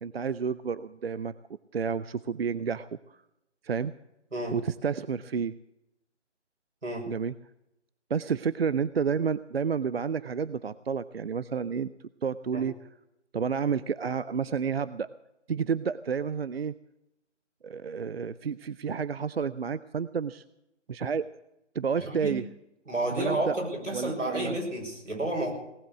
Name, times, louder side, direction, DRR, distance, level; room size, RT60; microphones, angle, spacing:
voice 1, 0.0-1.3 1.7-3.0 3.6-3.9 4.5-5.5 7.1-7.3 8.1-11.9 12.2-12.7 13.3-15.1 15.5-16.7 17.6-20.4 20.9-21.3 21.7-22.4 23.1-23.6 23.9-24.6, right 6 dB, 55° right, 16 dB, 0.5 m, -30 dB
voice 2, 22.0-22.4 22.9-25.5, right 1 dB, 85° right, 1 dB, 6.2 m, -31 dB
18.0 x 8.0 x 8.1 m, 0.88 s
figure-of-eight pair, 160°, 36 cm